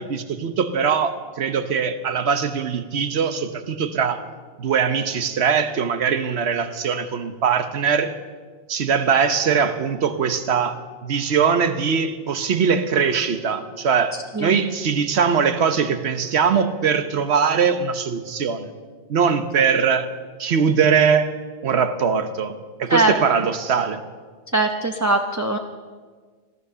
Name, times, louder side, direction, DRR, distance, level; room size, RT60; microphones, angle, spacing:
voice 1, 0.0-4.2 4.6-8.1 8.7-10.7 11.0-18.7 19.1-20.1 20.4-21.3 21.6-24.0, right 6 dB, 90° right, 10 dB, 1.2 m, -21 dB
voice 2, 24.5-25.6, right 2 dB, 20° right, 4 dB, 0.7 m, -20 dB
16.5 x 12.5 x 6.8 m, 1.5 s
omnidirectional pair, 1.1 m